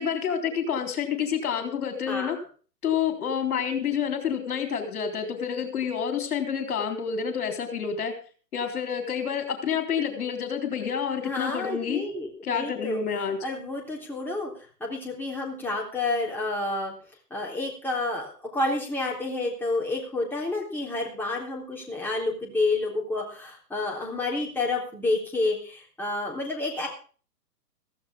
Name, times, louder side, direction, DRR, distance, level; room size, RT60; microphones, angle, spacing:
voice 1, 0.0-2.4 2.8-8.1 8.5-12.0 12.4-13.4, left 7 dB, 60° left, 6 dB, 3.9 m, -28 dB
voice 2, 11.2-13.0 13.4-14.5 14.8-16.9 17.3-26.9, left 2 dB, 5° left, -2 dB, 3.7 m, -29 dB
15.5 x 15.0 x 3.6 m, 0.39 s
figure-of-eight pair, 125°, 49 cm